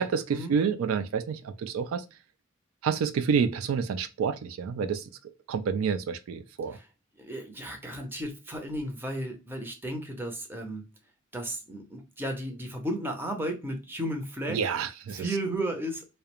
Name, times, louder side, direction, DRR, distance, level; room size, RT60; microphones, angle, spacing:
voice 1, 0.0-2.0 2.8-5.0 5.5-6.8 14.5-15.2, right 6 dB, 90° right, 0.3 m, -28 dB
voice 2, 7.2-10.8 11.3-14.6 15.1-16.1, right 1 dB, 10° right, 0.6 m, -34 dB
2.4 x 2.1 x 2.8 m
head